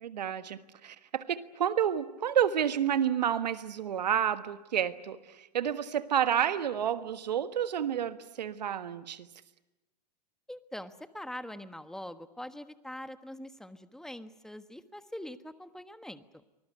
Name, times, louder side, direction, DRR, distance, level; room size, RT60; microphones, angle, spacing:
voice 1, 0.0-9.3, right 9 dB, 80° right, 12 dB, 1.5 m, -30 dB
voice 2, 10.5-16.4, left 1 dB, ahead, 11 dB, 1.3 m, -43 dB
24.5 x 20.0 x 9.9 m, 1.0 s
hypercardioid pair, 110°, 21 cm